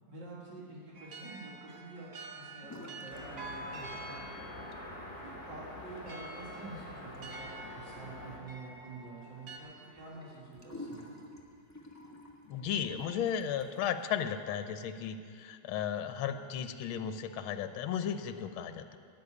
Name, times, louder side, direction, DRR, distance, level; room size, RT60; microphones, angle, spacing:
voice 1, 0.1-4.3 5.2-11.1, right 3 dB, 60° right, -7 dB, 2.5 m, -48 dB
sound 1, 0.9-9.6, right 2 dB, 80° right, 0.4 m, -48 dB
sound 2, 2.6-3.2 3.5-4.2 4.5-14.0, left 1 dB, 15° left, 0.7 m, -52 dB
sound 3, 3.1-8.4, left 2 dB, 35° left, 1.7 m, -46 dB
voice 2, 12.5-19.0, left 8 dB, 80° left, 10 dB, 1.5 m, -35 dB
13.0 x 6.9 x 9.5 m, 2.4 s
omnidirectional pair, 2.2 m